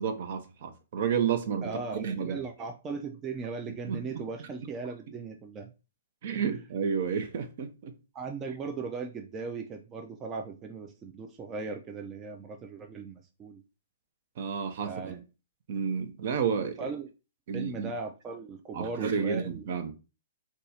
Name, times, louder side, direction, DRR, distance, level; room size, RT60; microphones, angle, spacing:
voice 1, 0.0-2.4 3.9-4.5 6.2-7.9 14.4-15.2 15.7-16.9 17.5-17.9 18.7-19.9, right 6 dB, 55° right, 0.7 m, -31 dB
voice 2, 1.6-5.7 6.3-6.4 8.1-13.6 14.8-15.2 16.8-17.1 17.5-19.6, right 4 dB, 20° right, 0.4 m, -38 dB
2.7 x 2.4 x 4.1 m
hypercardioid pair, 140°, 0 cm